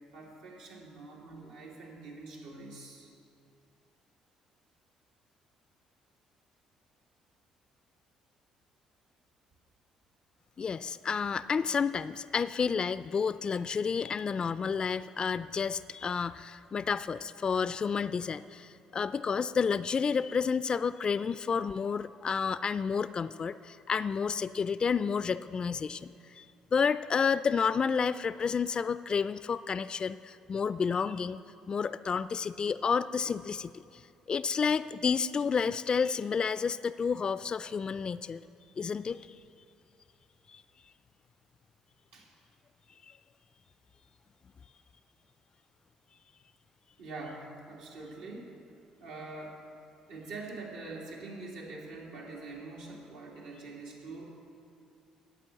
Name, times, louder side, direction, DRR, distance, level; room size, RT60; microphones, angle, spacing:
voice 1, 0.1-3.1 42.1-42.3 47.0-48.6 49.0-49.6 50.1-54.3, right 3 dB, 90° right, -4 dB, 2.6 m, -44 dB
voice 2, 10.6-26.5 26.7-31.4 31.7-34.0 34.3-38.4 38.8-39.2 40.5-40.6, left 6 dB, 40° left, 15 dB, 0.3 m, -30 dB
9.2 x 8.3 x 7.5 m, 2.6 s
supercardioid pair, 65°, 2 cm